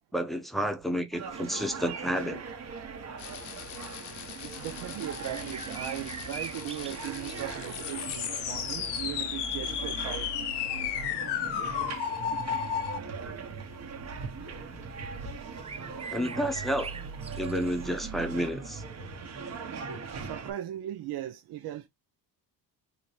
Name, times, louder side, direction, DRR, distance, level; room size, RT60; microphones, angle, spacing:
voice 1, 0.1-2.4 16.1-16.9 17.4-18.8, equal, ahead, 0.8 m, -30 dB
sound 1, 1.1-20.5, right 5 dB, 40° right, 1.1 m, -40 dB
sound 2, 1.3-1.7 3.7-3.8 4.6-4.7 5.2-8.0 8.6-9.1 9.6-9.7 10.6-11.0 11.6-12.0 13.8-14.0 15.1-15.2 15.4-18.0, right 5 dB, 15° right, 0.3 m, -44 dB
sound 3, 3.2-13.0, left 9 dB, 75° left, 0.9 m, -35 dB
voice 2, 4.4-10.3 20.2-21.9, right 12 dB, 70° right, 0.7 m, -38 dB
3.8 x 2.9 x 3.2 m
cardioid pair, 125°, 41 cm